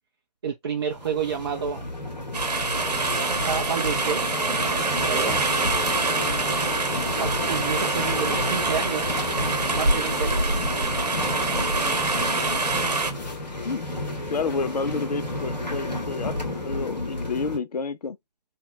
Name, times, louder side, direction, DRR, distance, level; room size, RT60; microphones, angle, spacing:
voice 1, 0.4-1.9 3.4-4.2 4.6-4.8 5.1-5.4 7.2-10.5 11.2-11.8, right 7 dB, 35° right, 0.5 m, -30 dB
sound 1, 0.9-17.6, left 1 dB, 90° left, 1.4 m, -31 dB
sound 2, 2.3-13.1, right 3 dB, 70° right, 1.0 m, -25 dB
sound 3, 6.2-15.9, left 3 dB, 25° left, 1.0 m, -46 dB
voice 2, 14.3-18.2, left 4 dB, 70° left, 0.5 m, -30 dB
3.3 x 2.2 x 3.1 m
figure-of-eight pair, 140°, 21 cm